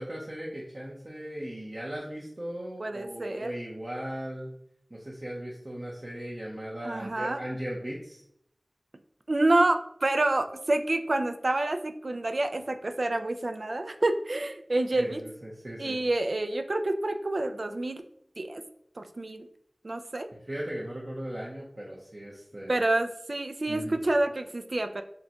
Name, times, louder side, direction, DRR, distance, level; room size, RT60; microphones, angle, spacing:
voice 1, 0.0-4.5 4.9-8.2 15.0-16.0 20.5-22.8 23.7-23.9, right 1 dB, 45° right, -5 dB, 0.7 m, -38 dB
voice 2, 2.8-3.5 6.8-7.4 9.3-15.2 15.8-18.0 18.4-18.6 19.0-19.5 19.8-20.3 22.7-25.0, right 2 dB, 65° right, 8 dB, 0.3 m, -28 dB
6.5 x 2.2 x 2.9 m, 0.73 s
wide cardioid pair, 50°, 0 cm